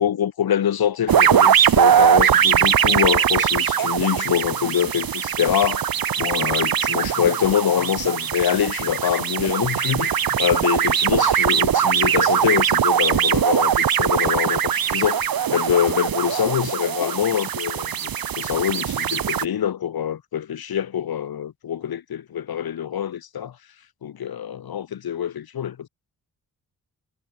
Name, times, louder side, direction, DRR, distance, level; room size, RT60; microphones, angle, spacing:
voice 1, 0.0-5.8 6.2-18.1 18.4-23.5 24.0-25.9, left 9 dB, 70° left, 6.3 m, -24 dB
sound 1, 1.1-19.5, right 9 dB, 65° right, 7.7 m, -21 dB
wide cardioid pair, 160°, 38 cm